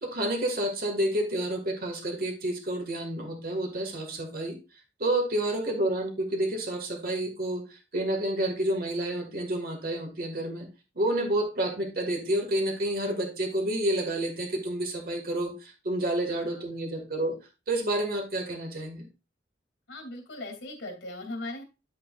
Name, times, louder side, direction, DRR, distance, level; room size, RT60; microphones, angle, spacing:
voice 1, 0.0-4.6 5.0-10.7 11.0-17.4 17.7-19.1, right 1 dB, 55° right, 3 dB, 1.8 m, -29 dB
voice 2, 16.3-16.8 19.9-21.6, left 2 dB, 90° left, 4 dB, 2.7 m, -39 dB
9.3 x 7.5 x 2.4 m, 0.27 s
head